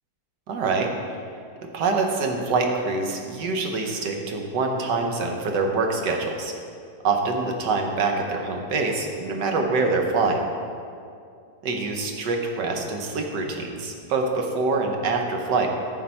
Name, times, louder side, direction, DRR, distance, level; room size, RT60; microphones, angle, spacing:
voice 1, 0.5-0.9 1.7-6.5 7.0-10.4 11.6-15.7, right 3 dB, 80° right, 2 dB, 1.6 m, -25 dB
14.0 x 4.7 x 4.3 m, 2.4 s
omnidirectional pair, 1.8 m